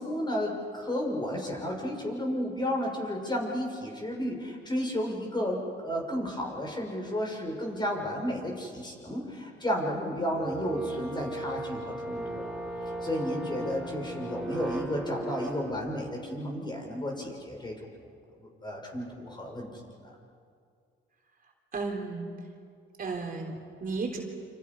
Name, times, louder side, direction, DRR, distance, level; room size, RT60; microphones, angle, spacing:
voice 1, 0.0-12.5 12.9-17.9 18.3-19.7 20.0-20.1, equal, 20° left, 0 dB, 6.3 m, -32 dB
sound 1, 10.4-15.7, right 2 dB, ahead, 7.1 m, -36 dB
voice 2, 21.7-22.3 23.0-24.2, right 4 dB, 45° right, 1 dB, 3.6 m, -34 dB
29.0 x 27.0 x 5.6 m, 2.2 s
cardioid pair, 90°, 20 cm